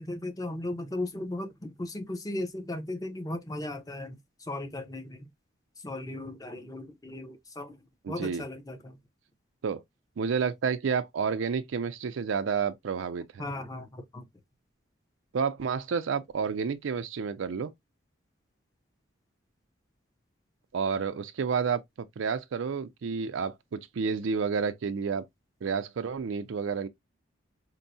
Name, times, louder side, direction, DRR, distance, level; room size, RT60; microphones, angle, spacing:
voice 1, 0.0-5.3 5.8-7.8 8.1-9.0 13.4-14.3, left 1 dB, 20° left, 0.6 m, -36 dB
voice 2, 8.1-8.4 9.6-9.8 10.2-13.4 15.3-17.7 20.7-21.8 22.2-25.3 25.6-26.9, right 6 dB, 75° right, 0.4 m, -30 dB
4.4 x 2.0 x 2.6 m
head